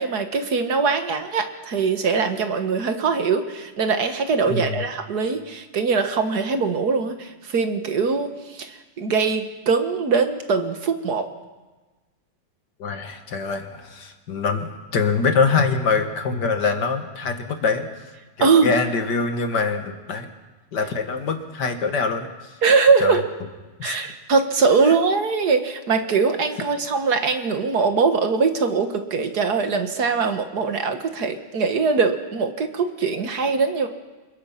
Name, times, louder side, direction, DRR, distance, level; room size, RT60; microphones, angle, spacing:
voice 1, 0.0-11.3 18.4-18.7 22.6-23.3 23.8-33.9, right 4 dB, 55° right, 7 dB, 1.9 m, -22 dB
voice 2, 4.5-4.8 12.8-17.9 18.4-20.3 20.7-22.3 23.0-23.2 23.8-24.1 24.9-25.0, left 4 dB, 60° left, 6 dB, 2.2 m, -24 dB
25.5 x 22.0 x 5.8 m, 1.2 s
omnidirectional pair, 2.1 m